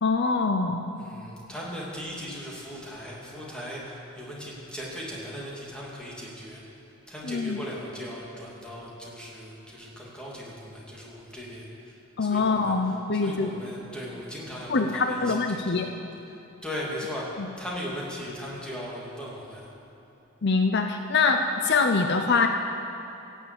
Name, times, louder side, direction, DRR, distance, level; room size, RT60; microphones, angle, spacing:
voice 1, 0.0-0.8 7.2-7.6 12.2-13.5 14.7-15.9 17.4-17.5 20.4-22.5, left 4 dB, 55° left, 6 dB, 0.6 m, -24 dB
voice 2, 1.0-6.6 7.1-12.7 13.2-15.3 15.7-15.8 16.6-17.2 17.6-19.7, equal, 5° left, -5 dB, 2.8 m, -38 dB
16.5 x 7.4 x 8.7 m, 2.9 s
head